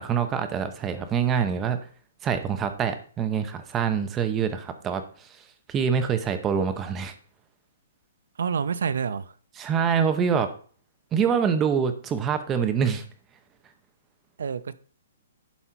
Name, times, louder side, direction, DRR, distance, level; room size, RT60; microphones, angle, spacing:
voice 1, 0.0-1.8 2.2-5.3 5.7-7.1 9.6-10.5 11.1-13.0, right 7 dB, 15° right, 9 dB, 0.8 m, -25 dB
voice 2, 8.4-9.3 14.4-14.8, right 6 dB, 75° right, 15 dB, 0.6 m, -28 dB
11.5 x 4.3 x 4.5 m, 0.44 s
hypercardioid pair, 165°, 0 cm